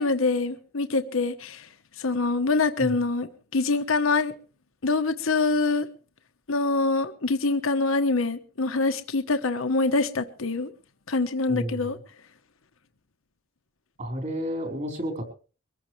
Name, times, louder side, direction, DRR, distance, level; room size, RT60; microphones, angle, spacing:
voice 1, 0.0-1.7 2.0-4.3 4.8-5.9 6.5-10.7 11.1-12.0, left 3 dB, 75° left, 1.1 m, -25 dB
voice 2, 11.5-11.9 14.0-15.3, equal, 40° right, 4.4 m, -31 dB
23.5 x 14.5 x 3.2 m
head